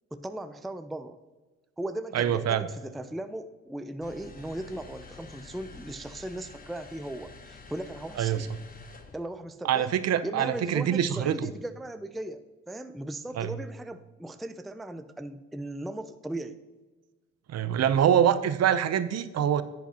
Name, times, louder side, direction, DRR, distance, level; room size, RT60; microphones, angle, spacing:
voice 1, 0.1-1.2 1.8-8.5 9.1-9.9 10.2-16.6, right 1 dB, ahead, 10 dB, 0.3 m, -37 dB
voice 2, 2.1-2.7 8.2-8.5 9.6-11.5 13.4-13.6 17.5-19.6, right 9 dB, 55° right, 13 dB, 0.6 m, -25 dB
sound 1, 4.0-9.2, left 4 dB, 30° left, 0.9 m, -48 dB
10.0 x 8.4 x 2.8 m, 1.3 s
cardioid pair, 90°, 30 cm